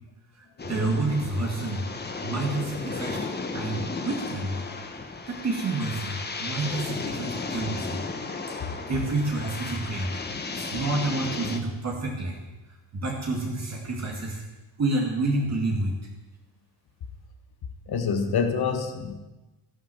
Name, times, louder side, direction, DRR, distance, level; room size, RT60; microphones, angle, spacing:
voice 1, 0.4-1.9 2.2-4.6 4.9-8.0 8.5-10.1 10.5-12.4 12.9-14.4 14.8-16.0, right 2 dB, 35° right, -1 dB, 2.2 m, -29 dB
sound 1, 0.6-11.6, left 4 dB, 20° left, 1.2 m, -34 dB
voice 2, 17.9-19.2, left 6 dB, 55° left, 7 dB, 1.8 m, -26 dB
13.0 x 11.0 x 7.7 m, 1.1 s
cardioid pair, 160°, 45 cm